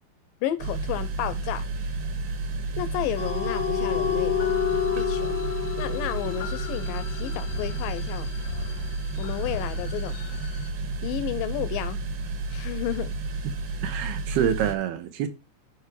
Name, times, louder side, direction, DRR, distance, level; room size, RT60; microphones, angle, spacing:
voice 1, 0.4-2.0 2.8-4.4 4.9-5.3 5.8-8.3 9.2-10.2 11.0-12.0 12.5-13.1, left 12 dB, 85° left, 2.0 m, -32 dB
sound 1, 0.6-14.7, right 3 dB, 60° right, 2.5 m, -31 dB
sound 2, 3.2-10.7, left 9 dB, 60° left, 1.0 m, -31 dB
voice 2, 13.8-15.3, right 9 dB, 75° right, 2.9 m, -26 dB
13.0 x 4.8 x 3.1 m
omnidirectional pair, 4.6 m